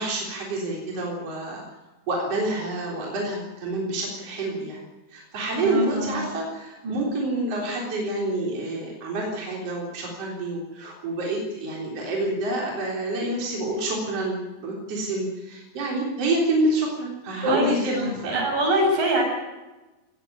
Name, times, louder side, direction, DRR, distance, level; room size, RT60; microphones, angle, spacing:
voice 1, 0.0-1.6 2.1-4.8 5.1-18.4, right 2 dB, 45° right, -2 dB, 4.7 m, -28 dB
voice 2, 5.6-6.2 6.8-7.0 17.4-19.2, right 1 dB, 70° right, 1 dB, 8.5 m, -24 dB
19.5 x 15.5 x 10.0 m, 1.1 s
omnidirectional pair, 3.9 m